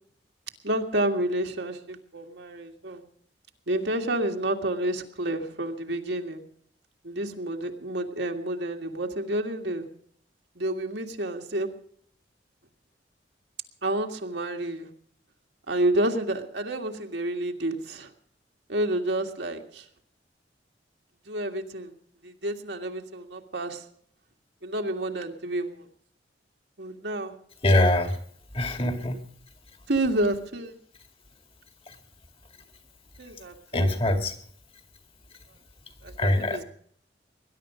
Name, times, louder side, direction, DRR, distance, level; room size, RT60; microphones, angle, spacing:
voice 1, 0.6-3.0 3.7-6.4 7.0-9.9 10.6-11.7 13.8-14.9 15.7-18.1 18.7-19.9 21.3-21.9 22.2-23.8 24.6-25.8 26.8-27.3 29.9-30.8 33.2-33.9 36.0-36.6, right 1 dB, 75° right, 3 dB, 1.9 m, -29 dB
voice 2, 27.6-28.2 28.5-29.2 31.9-32.0 33.7-34.4 36.2-36.6, left 1 dB, 30° left, 5 dB, 2.2 m, -23 dB
20.5 x 11.0 x 5.0 m, 0.63 s
head